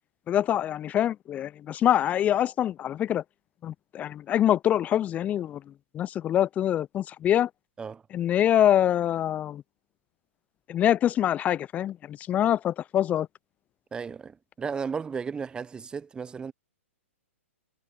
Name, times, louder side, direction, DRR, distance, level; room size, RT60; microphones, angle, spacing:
voice 1, 0.3-3.2 3.6-5.6 5.9-7.5 8.1-9.6 10.7-13.3, left 11 dB, 20° left, 0.8 m, -25 dB
voice 2, 13.9-16.5, right 6 dB, 10° right, 1.2 m, -34 dB
figure-of-eight pair, 115°, 7 cm